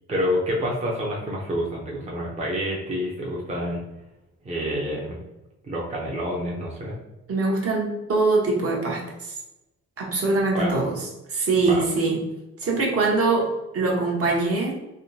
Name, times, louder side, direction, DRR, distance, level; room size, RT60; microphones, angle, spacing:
voice 1, 0.1-3.8 4.4-5.2 5.6-6.9 10.5-10.8 11.6-11.8, equal, 20° right, -3 dB, 0.7 m, -28 dB
voice 2, 7.3-9.4 10.0-12.2 12.6-14.7, right 3 dB, 50° right, -2 dB, 1.1 m, -23 dB
3.5 x 2.2 x 2.7 m, 0.97 s
cardioid pair, 90°, 30 cm